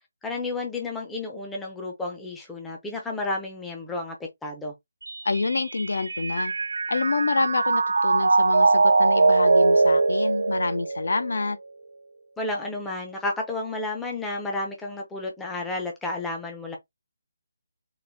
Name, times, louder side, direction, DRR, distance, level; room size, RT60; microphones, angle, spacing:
voice 1, 0.2-4.2 4.4-4.7 12.4-16.8, left 2 dB, 5° left, 0.6 m, -31 dB
Mallet percussion, 5.1-11.5, right 3 dB, 90° right, 0.4 m, -22 dB
voice 2, 5.2-6.5 6.9-11.6, left 3 dB, 65° left, 0.6 m, -27 dB
3.9 x 2.6 x 3.4 m
hypercardioid pair, 175°, 0 cm